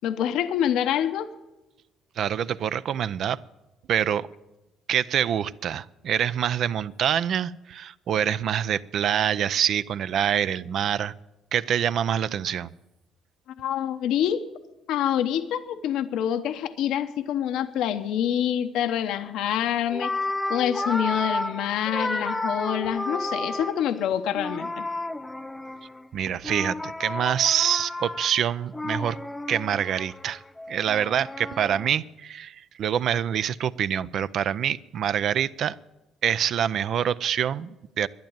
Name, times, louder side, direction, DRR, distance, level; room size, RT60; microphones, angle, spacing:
voice 1, 0.0-1.3 13.6-14.4 14.9-20.1 20.5-24.8, left 10 dB, 75° left, 9 dB, 0.8 m, -26 dB
voice 2, 2.2-3.4 3.9-4.3 4.9-11.1 11.5-12.7 26.1-29.2 29.5-30.4 30.7-35.8 36.2-38.1, right 9 dB, 60° right, 16 dB, 0.5 m, -25 dB
sound 1, 19.5-19.6 19.9-23.9 24.3-26.0 26.4-31.9, left 2 dB, 10° left, 0.6 m, -32 dB
12.0 x 10.5 x 8.9 m, 0.99 s
cardioid pair, 105°, 0 cm